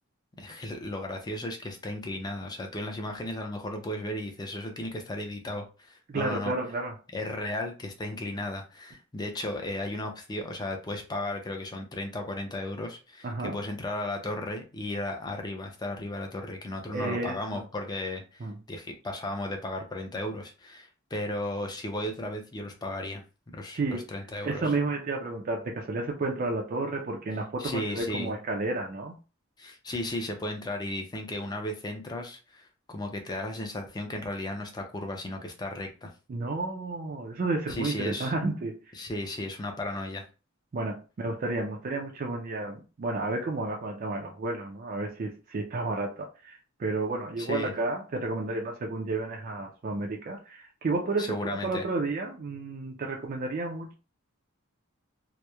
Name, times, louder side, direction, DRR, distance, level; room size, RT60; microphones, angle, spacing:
voice 1, 0.4-6.5 7.1-23.2 23.5-24.7 27.6-28.3 29.6-36.1 37.7-38.5 38.9-40.3 47.4-47.7 51.2-51.8, left 1 dB, 20° left, 3 dB, 0.4 m, -35 dB
voice 2, 6.1-6.9 13.2-13.6 16.9-17.6 18.4-18.5 23.7-24.0 24.4-29.1 36.3-38.8 40.7-53.9, right 3 dB, 40° right, 1 dB, 0.4 m, -31 dB
2.8 x 2.0 x 2.2 m, 0.33 s
head